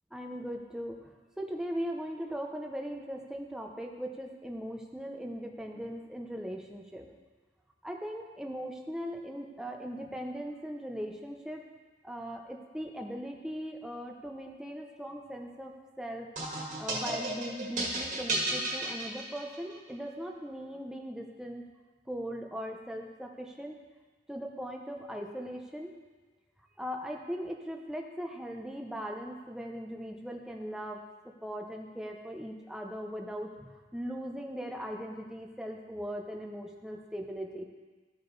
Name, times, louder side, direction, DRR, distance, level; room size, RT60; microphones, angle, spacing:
voice 1, 0.1-7.1 7.8-11.6 12.0-21.6 22.1-23.8 24.3-26.0 26.8-31.0 31.4-37.7, equal, 5° right, 1 dB, 0.7 m, -39 dB
sound 1, 16.4-19.7, right 2 dB, 40° right, 1.8 m, -33 dB
14.0 x 5.0 x 4.0 m, 1.3 s
head